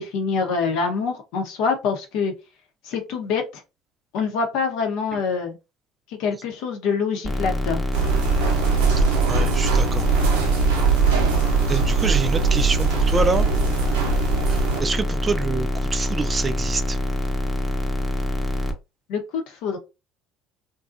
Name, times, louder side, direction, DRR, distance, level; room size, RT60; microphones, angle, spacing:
voice 1, 0.0-2.3 2.9-3.4 4.1-5.6 6.2-7.8 19.1-19.8, left 5 dB, 70° left, 0.8 m, -25 dB
sound 1, 7.2-18.7, left 1 dB, 10° left, 0.7 m, -25 dB
sound 2, 7.9-14.8, right 5 dB, 90° right, 0.6 m, -21 dB
voice 2, 9.3-10.0 11.7-13.5 14.5-17.0, right 4 dB, 30° right, 0.3 m, -26 dB
2.6 x 2.3 x 2.5 m
hypercardioid pair, 70°, 0 cm